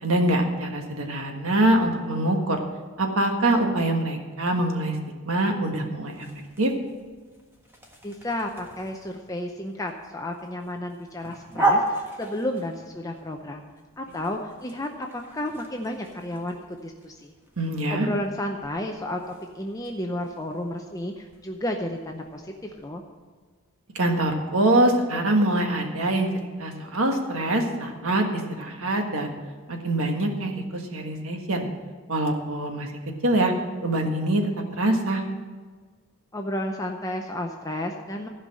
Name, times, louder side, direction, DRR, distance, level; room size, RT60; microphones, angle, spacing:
voice 1, 0.0-2.6 3.0-5.0 5.3-6.3 6.6-6.7 17.6-18.1 23.9-26.3 26.6-29.3 29.7-31.7 32.1-32.9 33.2-33.5 33.8-35.2, right 1 dB, 70° right, 3 dB, 1.6 m, -24 dB
sound 1, 6.1-22.9, right 2 dB, 10° right, 1.4 m, -35 dB
voice 2, 8.0-13.6 14.0-17.3 17.9-19.2 19.5-23.0 36.3-38.3, left 1 dB, 15° left, 3 dB, 0.6 m, -32 dB
15.0 x 5.4 x 7.6 m, 1.5 s
head